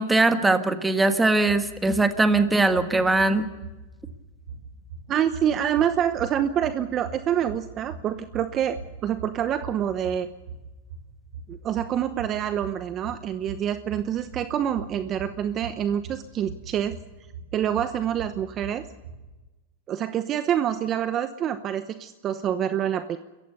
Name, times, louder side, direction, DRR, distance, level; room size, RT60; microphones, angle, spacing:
voice 1, 0.0-3.5, right 2 dB, 10° right, 8 dB, 1.6 m, -21 dB
sound 1, 1.1-19.4, right 5 dB, 80° right, 6.8 m, -42 dB
voice 2, 5.1-10.3 11.5-17.0 17.5-18.8 19.9-23.2, right 9 dB, 35° right, 11 dB, 0.9 m, -26 dB
28.0 x 15.0 x 6.8 m, 1.1 s
supercardioid pair, 125°, 0 cm